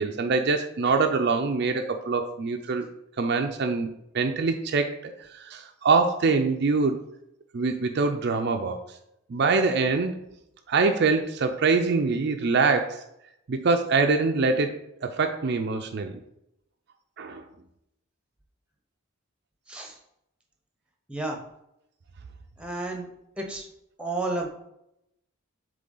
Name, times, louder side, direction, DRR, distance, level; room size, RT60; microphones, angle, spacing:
voice 1, 0.0-2.9 3.2-3.9 4.1-7.0 7.5-9.0 9.3-10.2 10.7-13.0 13.5-16.2 17.2-17.4, right 4 dB, 50° right, 5 dB, 0.4 m, -24 dB
voice 2, 19.7-20.0 21.1-21.4 22.6-23.1 23.4-23.7 24.0-24.5, right 2 dB, 5° right, 2 dB, 0.8 m, -31 dB
7.6 x 3.3 x 3.8 m, 0.82 s
head